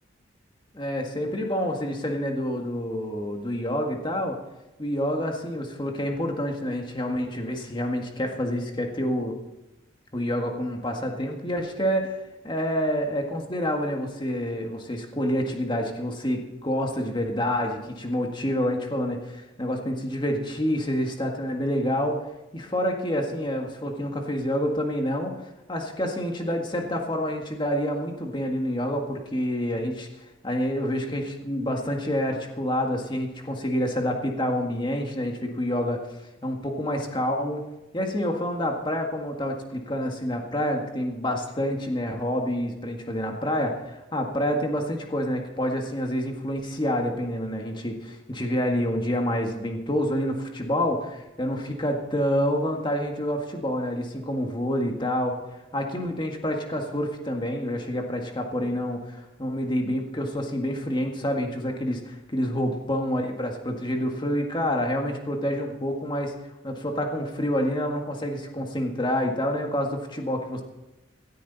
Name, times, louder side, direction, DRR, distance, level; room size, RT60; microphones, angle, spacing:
voice 1, 0.7-4.4 4.8-9.4 10.1-12.1 12.4-22.2 22.5-25.3 25.7-36.1 36.4-37.6 37.9-55.4 55.7-66.3 66.6-70.6, equal, 25° left, 2 dB, 1.8 m, -28 dB
17.0 x 13.5 x 4.2 m, 1.0 s
head